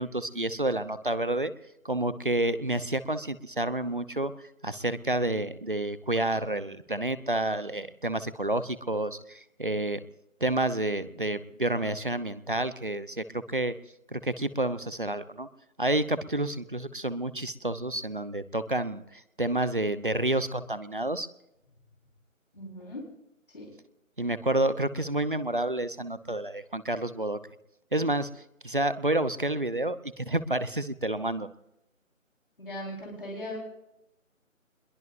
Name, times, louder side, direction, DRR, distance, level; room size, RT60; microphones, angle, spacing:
voice 1, 0.0-1.5 1.8-4.3 4.6-10.0 10.4-13.8 14.1-15.5 15.8-21.3 24.2-27.4 27.9-28.3 28.6-31.5, right 1 dB, 40° right, 14 dB, 0.8 m, -29 dB
voice 2, 22.5-23.1 23.5-23.7 32.6-33.6, left 1 dB, 40° left, -3 dB, 4.4 m, -38 dB
25.5 x 22.0 x 2.6 m, 0.86 s
figure-of-eight pair, 180°, 40 cm